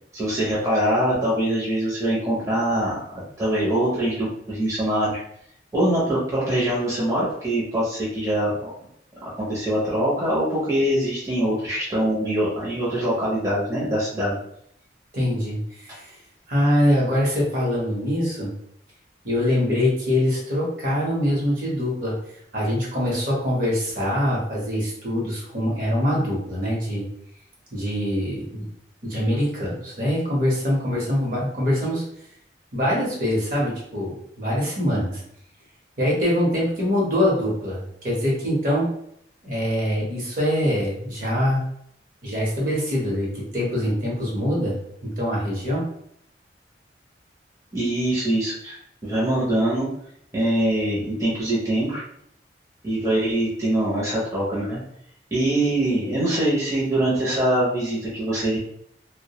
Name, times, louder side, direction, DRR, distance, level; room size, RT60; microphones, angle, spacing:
voice 1, 0.1-5.2 5.7-8.7 9.4-14.4 47.7-48.8 49.0-49.9 50.3-52.0 52.8-54.8 55.3-58.6, right 1 dB, 15° right, -8 dB, 0.6 m, -23 dB
voice 2, 15.1-16.2 16.5-18.5 19.2-22.1 22.5-27.0 27.7-28.7 29.0-32.0 32.7-35.2 36.0-38.9 39.4-41.6 42.2-44.8 45.2-45.8, left 1 dB, 50° right, -4 dB, 0.8 m, -24 dB
2.2 x 2.1 x 2.8 m, 0.70 s
head